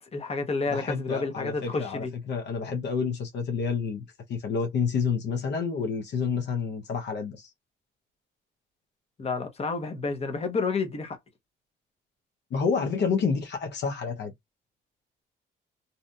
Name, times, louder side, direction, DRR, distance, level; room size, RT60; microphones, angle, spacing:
voice 1, 0.0-2.1 9.2-11.2, left 4 dB, 30° left, 0.9 m, -30 dB
voice 2, 0.7-7.5 12.5-14.3, left 5 dB, 60° left, 0.7 m, -29 dB
2.7 x 2.5 x 2.3 m
cardioid pair, 90°, 20 cm